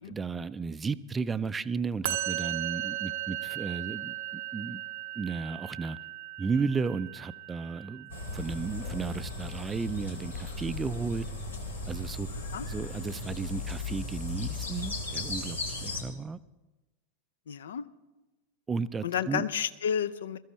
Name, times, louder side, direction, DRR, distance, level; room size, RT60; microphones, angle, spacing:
voice 1, 0.1-4.8 5.2-6.0 6.4-11.3 11.9-12.3 12.7-16.4 18.7-19.4, right 5 dB, 15° right, 15 dB, 0.4 m, -34 dB
Musical instrument, 2.0-9.3, right 15 dB, 55° right, 0.7 m, -37 dB
sound 1, 8.1-16.0, left 2 dB, 80° left, 2.2 m, -36 dB
voice 2, 17.5-17.9 19.0-20.4, left 8 dB, 65° left, 14 dB, 0.6 m, -31 dB
21.0 x 14.0 x 3.2 m, 1.1 s
figure-of-eight pair, 90°, 0 cm